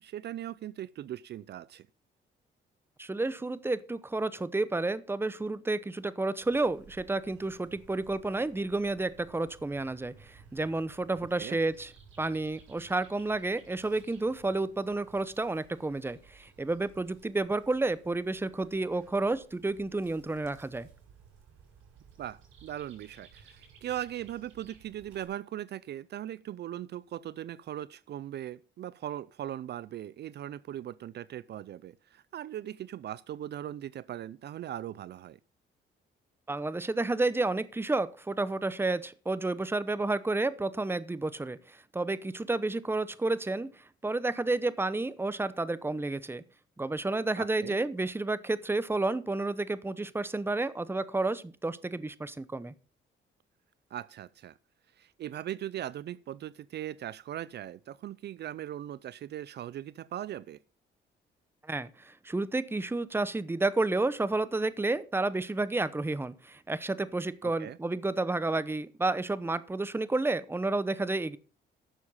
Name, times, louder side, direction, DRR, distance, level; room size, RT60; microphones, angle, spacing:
voice 1, 0.0-1.9 11.4-11.6 22.2-35.4 47.4-47.8 53.9-54.5 55.0-60.6 67.4-67.8, right 12 dB, 60° right, 0.4 m, -39 dB
voice 2, 3.0-11.9 12.2-20.9 36.5-43.7 44.0-46.4 46.8-52.7 61.7-71.4, right 2 dB, 10° right, 0.8 m, -31 dB
sound 1, 6.4-25.3, right 6 dB, 80° right, 6.3 m, -58 dB
11.0 x 7.2 x 5.5 m
cardioid pair, 90°, 20 cm